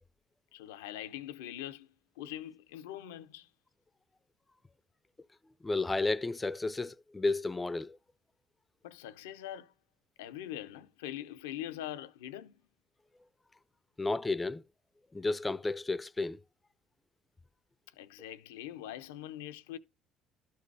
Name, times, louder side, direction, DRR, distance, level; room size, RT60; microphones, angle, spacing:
voice 1, 0.5-1.9 2.2-3.5 8.8-9.7 10.2-12.6 17.9-19.8, left 12 dB, 90° left, 0.5 m, -43 dB
voice 2, 5.6-8.0 14.0-14.6 15.1-16.4, left 3 dB, 20° left, 0.5 m, -32 dB
12.5 x 4.3 x 4.6 m
supercardioid pair, 70°, 0 cm